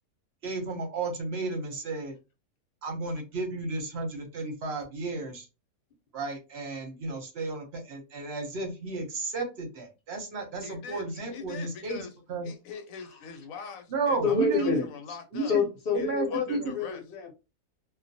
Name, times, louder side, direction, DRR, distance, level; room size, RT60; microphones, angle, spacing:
voice 1, 0.4-2.1 2.8-5.5 6.1-12.0 12.3-12.5 13.9-14.8 15.3-15.6 15.9-16.7, right 3 dB, 55° right, 0.8 m, -33 dB
voice 2, 10.6-12.1 12.4-15.5 16.0-17.0, left 6 dB, 70° left, 1.0 m, -43 dB
voice 3, 14.2-15.2 15.5-17.3, left 4 dB, 50° left, 0.8 m, -28 dB
2.3 x 2.2 x 2.6 m
omnidirectional pair, 1.5 m